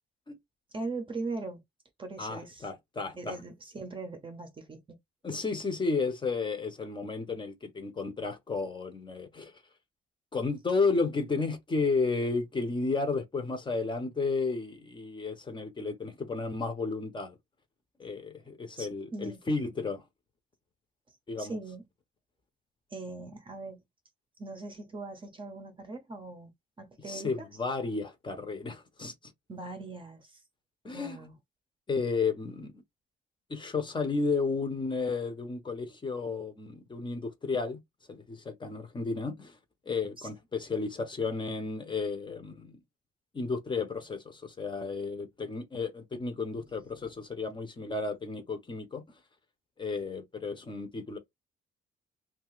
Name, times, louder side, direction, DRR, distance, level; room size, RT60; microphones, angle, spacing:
voice 1, 0.7-1.6 2.0-2.7 3.2-5.0 18.8-19.4 21.4-21.9 22.9-23.8 24.4-26.5 26.8-27.5 29.5-30.4 30.9-31.3 46.9-47.1, right 3 dB, 25° right, 0.7 m, -40 dB
voice 2, 2.2-3.4 5.2-9.5 10.3-17.4 18.0-20.0 21.3-21.6 27.1-29.1 30.8-31.2 31.9-32.8 33.5-37.8 38.1-39.6 39.9-42.8 43.3-49.0 49.8-51.2, left 4 dB, 25° left, 0.7 m, -32 dB
2.7 x 2.4 x 3.0 m
cardioid pair, 125°, 20 cm